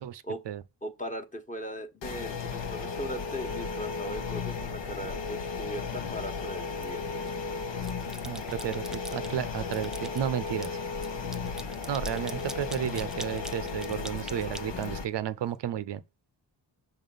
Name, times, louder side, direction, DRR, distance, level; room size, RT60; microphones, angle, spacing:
voice 1, 0.0-0.6 8.2-10.7 11.9-16.0, right 10 dB, 70° right, 0.6 m, -33 dB
voice 2, 0.8-7.2, equal, 20° left, 1.2 m, -39 dB
sound 1, 2.0-15.0, left 4 dB, 80° left, 1.1 m, -35 dB
sound 2, 6.8-7.4 7.7-9.3 9.7-15.5, right 1 dB, ahead, 0.4 m, -44 dB
5.9 x 3.7 x 5.5 m
cardioid pair, 80°, 43 cm